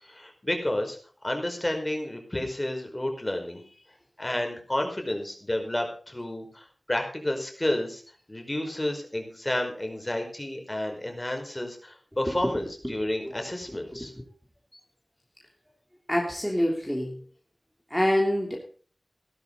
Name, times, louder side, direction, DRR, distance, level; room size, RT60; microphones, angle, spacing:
voice 1, 0.0-3.6 4.2-8.0 8.3-14.1 14.7-14.8, left 1 dB, 20° left, 4 dB, 5.0 m, -31 dB
voice 2, 16.1-17.1 17.9-18.6, equal, 5° left, -1 dB, 3.2 m, -26 dB
16.5 x 13.0 x 4.0 m, 0.41 s
wide cardioid pair, 75°, 0 cm